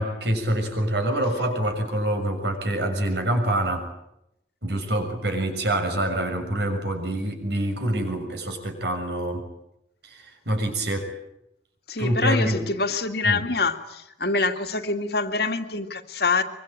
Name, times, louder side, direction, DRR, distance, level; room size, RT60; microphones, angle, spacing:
voice 1, 0.0-3.9 4.6-9.5 10.0-11.1 12.0-12.7 13.2-13.5, right 1 dB, 65° right, 5 dB, 6.6 m, -26 dB
voice 2, 11.9-16.4, left 3 dB, 55° left, 6 dB, 2.2 m, -25 dB
24.0 x 24.0 x 9.1 m, 0.83 s
head